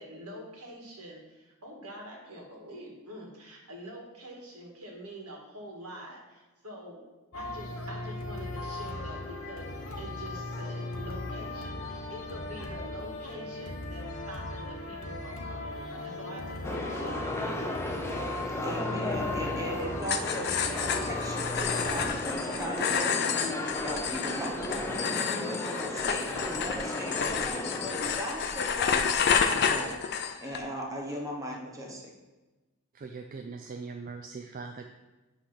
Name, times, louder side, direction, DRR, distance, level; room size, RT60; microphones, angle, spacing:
voice 1, 0.0-7.0 7.3-17.8, equal, 80° right, -1 dB, 1.8 m, -45 dB
sound 1, 7.3-22.1, left 2 dB, 65° left, 1.0 m, -38 dB
sound 2, 16.6-28.2, left 1 dB, 10° left, 0.6 m, -35 dB
voice 2, 18.6-23.3 23.8-29.1 29.5-30.0 30.4-32.1, equal, 15° right, -1 dB, 1.0 m, -38 dB
voice 3, 19.3-19.6 32.9-34.9, right 4 dB, 40° right, 4 dB, 0.4 m, -41 dB
sound 3, 20.0-30.6, left 6 dB, 50° left, 0.5 m, -30 dB
8.4 x 3.3 x 5.8 m, 1.2 s
head